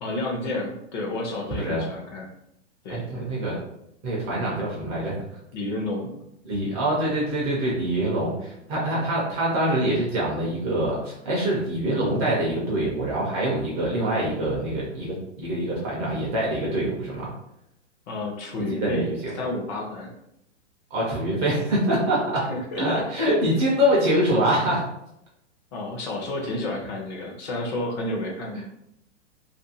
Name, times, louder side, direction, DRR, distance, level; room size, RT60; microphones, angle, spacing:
voice 1, 0.0-2.3 2.8-3.3 5.5-6.2 18.1-20.1 22.5-23.0 25.7-28.6, left 2 dB, 40° left, 0 dB, 0.7 m, -31 dB
voice 2, 2.9-3.6 4.0-5.2 6.4-17.3 18.7-19.3 20.9-22.5 22.8-24.9 28.5-28.6, right 1 dB, 20° right, -4 dB, 0.4 m, -25 dB
2.5 x 2.5 x 2.7 m, 0.79 s
hypercardioid pair, 140°, 37 cm